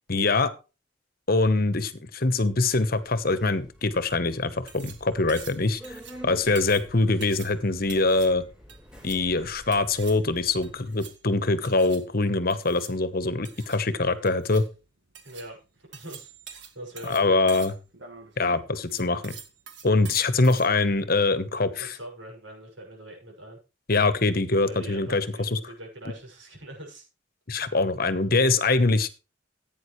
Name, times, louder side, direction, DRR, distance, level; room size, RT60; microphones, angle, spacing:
voice 1, 0.1-0.5 1.3-8.4 9.0-14.6 17.0-17.7 18.4-19.3 19.8-22.0 23.9-25.6 27.5-29.1, left 3 dB, 50° left, 13 dB, 1.1 m, -24 dB
Subway metro underground, 2.6-10.7, equal, 5° right, 4.2 m, -49 dB
sound 1, 4.5-20.7, right 7 dB, 65° right, 1.9 m, -47 dB
voice 2, 15.2-16.3 16.7-17.4 21.8-23.6 24.6-27.0 28.1-28.3, right 1 dB, 90° right, 0 dB, 6.5 m, -43 dB
15.5 x 9.2 x 3.2 m, 0.31 s
head